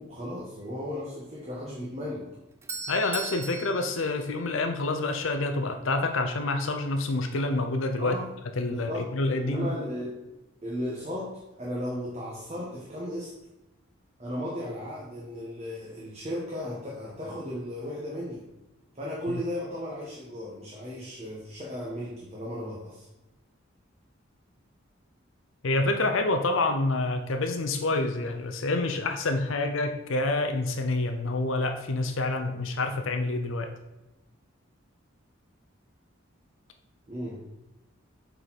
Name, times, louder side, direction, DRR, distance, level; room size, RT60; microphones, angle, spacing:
voice 1, 0.0-2.2 8.0-8.3 8.6-10.2 10.6-13.3 14.2-18.4 18.9-23.1 37.1-37.4, equal, 35° right, -4 dB, 1.4 m, -35 dB
Doorbell, 2.2-5.1, right 4 dB, 15° right, 0.5 m, -39 dB
voice 2, 2.9-8.1 8.6-9.7 25.6-33.7, left 2 dB, 80° left, 5 dB, 0.7 m, -27 dB
8.0 x 4.7 x 4.2 m, 0.99 s
head